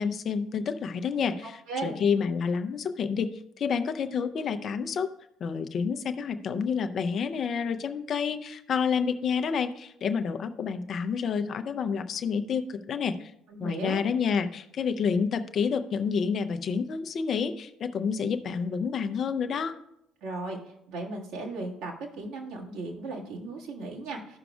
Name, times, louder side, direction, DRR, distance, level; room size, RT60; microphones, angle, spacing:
voice 1, 0.0-3.3 3.6-5.1 5.4-13.3 13.6-19.8, left 6 dB, 45° left, 9 dB, 0.6 m, -29 dB
voice 2, 1.4-1.9 13.5-14.0 20.2-24.4, right 2 dB, 65° right, -2 dB, 1.6 m, -36 dB
14.5 x 5.9 x 2.4 m, 0.78 s
figure-of-eight pair, 50°, 0 cm